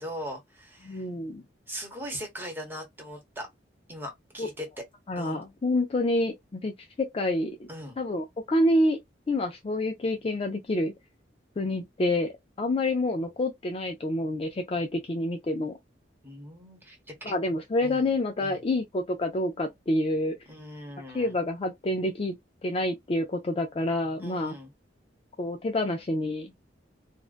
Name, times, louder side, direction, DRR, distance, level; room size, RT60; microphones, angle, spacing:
voice 1, 0.0-1.1 1.7-3.5 3.9-4.8 5.2-5.4 7.7-8.0 16.2-17.4 17.8-18.1 18.4-18.6 20.5-21.4 24.2-24.7, equal, 10° right, 1.1 m, -40 dB
voice 2, 0.9-1.4 4.4-4.5 5.1-7.7 8.0-9.0 9.3-10.9 11.6-15.8 17.3-20.4 21.1-22.4 22.6-24.5 25.4-26.5, left 1 dB, 30° left, 0.4 m, -28 dB
2.5 x 2.2 x 2.4 m
head